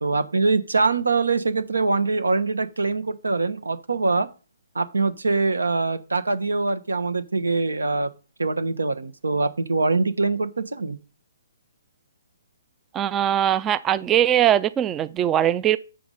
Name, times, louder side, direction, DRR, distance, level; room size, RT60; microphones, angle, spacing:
voice 1, 0.0-4.3 4.7-8.1 8.4-11.0, right 3 dB, 85° right, 1.0 m, -23 dB
voice 2, 12.9-15.8, right 11 dB, 20° right, 0.3 m, -21 dB
7.7 x 4.9 x 5.5 m
hypercardioid pair, 140°, 0 cm